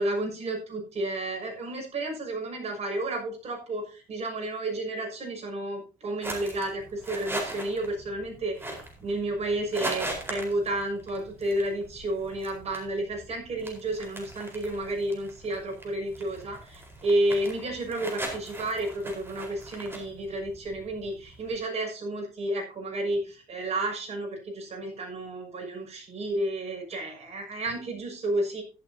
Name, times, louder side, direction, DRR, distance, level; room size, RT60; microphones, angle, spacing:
voice 1, 0.0-28.6, right 1 dB, 40° right, 2 dB, 6.4 m, -31 dB
sound 1, 6.2-21.6, right 1 dB, 15° right, 4.3 m, -40 dB
14.0 x 11.5 x 2.8 m, 0.34 s
cardioid pair, 110°, 17 cm